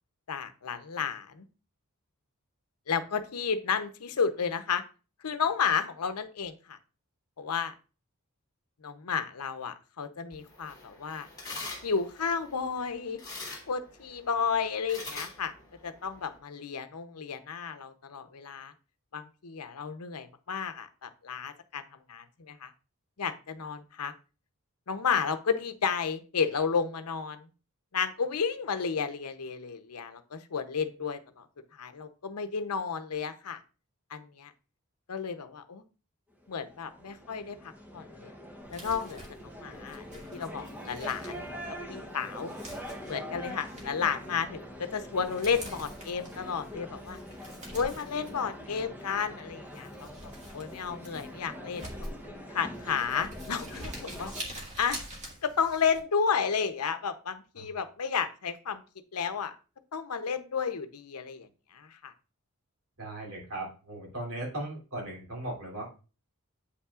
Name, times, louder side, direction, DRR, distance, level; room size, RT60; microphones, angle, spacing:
voice 1, 0.3-1.5 2.9-4.8 5.2-6.8 7.4-7.7 8.8-11.3 11.8-13.2 13.7-15.5 15.8-18.7 19.1-21.8 22.1-22.7 23.2-24.1 24.9-27.5 27.9-31.5 31.8-33.6 34.1-34.5 35.1-35.8 36.5-38.3 38.7-40.0 40.3-41.4 41.9-42.5 43.1-47.2 47.7-52.1 52.5-55.0 55.4-58.8 59.1-59.5 59.9-62.1, left 6 dB, 90° left, 10 dB, 0.7 m, -32 dB
sound 1, 10.3-16.4, left 3 dB, 15° left, 2.1 m, -45 dB
sound 2, 36.4-54.4, equal, 10° right, 0.9 m, -44 dB
Crumpling crinkling, 38.6-56.0, right 1 dB, 30° right, 1.8 m, -47 dB
voice 2, 63.0-66.0, right 1 dB, 70° right, -3 dB, 3.0 m, -38 dB
8.2 x 5.6 x 2.4 m, 0.34 s
head